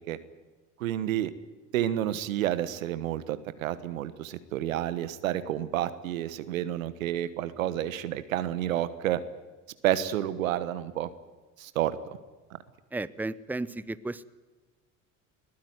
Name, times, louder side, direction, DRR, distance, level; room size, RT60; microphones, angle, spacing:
voice 1, 0.8-1.3 1.7-9.2 9.8-11.1 11.6-12.0, right 12 dB, 85° right, 14 dB, 1.3 m, -30 dB
voice 2, 12.9-14.2, right 2 dB, 5° right, 16 dB, 0.8 m, -34 dB
21.5 x 15.0 x 9.6 m, 1.3 s
hypercardioid pair, 65°, 39 cm